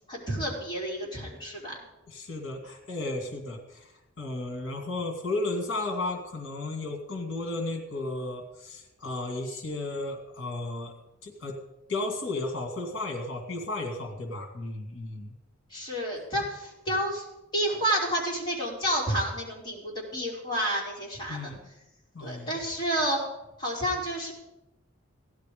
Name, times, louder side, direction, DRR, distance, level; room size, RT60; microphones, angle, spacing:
voice 1, 0.1-1.8 15.7-17.3 17.5-21.5 22.2-23.2 23.6-24.3, right 1 dB, 20° left, -4 dB, 4.6 m, -30 dB
voice 2, 2.1-10.9 11.2-11.6 11.9-15.3 21.3-21.6 22.1-22.6, left 2 dB, 60° left, 3 dB, 2.3 m, -34 dB
16.5 x 11.5 x 5.1 m, 0.95 s
head